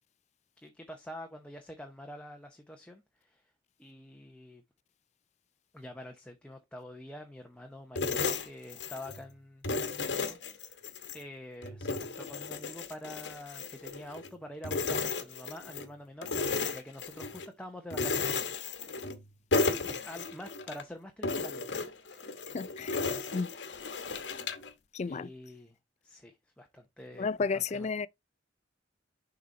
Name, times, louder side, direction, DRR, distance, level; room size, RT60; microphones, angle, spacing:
voice 1, 0.6-3.4 3.8-4.6 5.7-10.9 11.1-18.6 19.8-21.8 22.1-22.3 25.1-25.8 26.0-27.9, left 1 dB, 5° left, 0.7 m, -47 dB
sound 1, 8.0-9.2 9.6-11.2 11.6-14.3 14.6-15.9 16.2-17.5 17.9-19.2 19.5-20.8 21.2-24.7, left 3 dB, 75° left, 1.2 m, -34 dB
voice 2, 22.5-23.0 23.3-23.5 24.9-25.3 27.2-28.1, left 4 dB, 40° left, 0.4 m, -32 dB
6.7 x 3.9 x 4.2 m
head